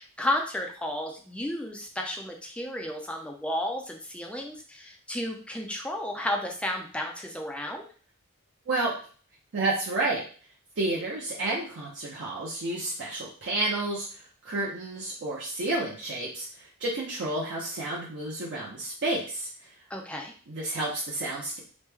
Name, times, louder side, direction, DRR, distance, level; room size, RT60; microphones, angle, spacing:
voice 1, 0.0-7.8 19.9-20.3, left 1 dB, 5° left, 2 dB, 0.4 m, -32 dB
voice 2, 9.5-10.2 10.8-19.7 20.5-21.6, right 2 dB, 55° right, -5 dB, 0.6 m, -30 dB
3.1 x 2.1 x 3.3 m, 0.42 s
head